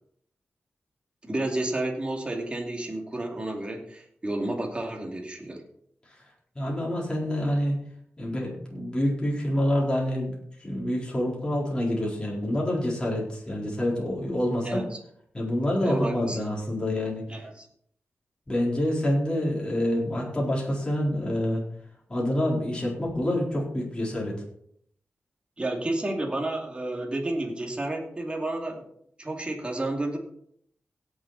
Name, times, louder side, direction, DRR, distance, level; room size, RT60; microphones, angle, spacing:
voice 1, 1.2-5.6 14.6-15.0 15.8-16.5 17.3-17.7 25.6-28.8 29.2-30.2, right 2 dB, 25° right, 1 dB, 2.6 m, -31 dB
voice 2, 6.6-7.7 8.2-10.3 10.6-14.8 15.3-17.2 18.5-21.6 22.1-24.4, left 1 dB, 20° left, -4 dB, 4.3 m, -27 dB
17.0 x 7.4 x 4.2 m, 0.67 s
wide cardioid pair, 95°, 4 cm